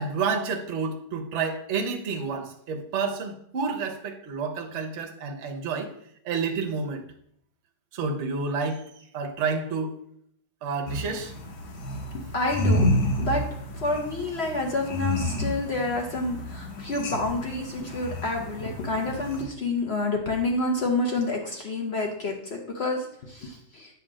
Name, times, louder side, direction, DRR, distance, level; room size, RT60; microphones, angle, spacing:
voice 1, 0.0-5.9 6.2-7.0 7.9-8.8 9.1-9.9 10.6-11.3, right 5 dB, 50° right, 3 dB, 0.8 m, -29 dB
sound 1, 10.9-19.4, left 1 dB, 75° left, 1.7 m, -30 dB
voice 2, 12.3-12.9 13.2-13.4 13.8-23.9, left 2 dB, 60° left, 1 dB, 0.7 m, -28 dB
8.3 x 2.9 x 6.1 m, 0.68 s
omnidirectional pair, 2.2 m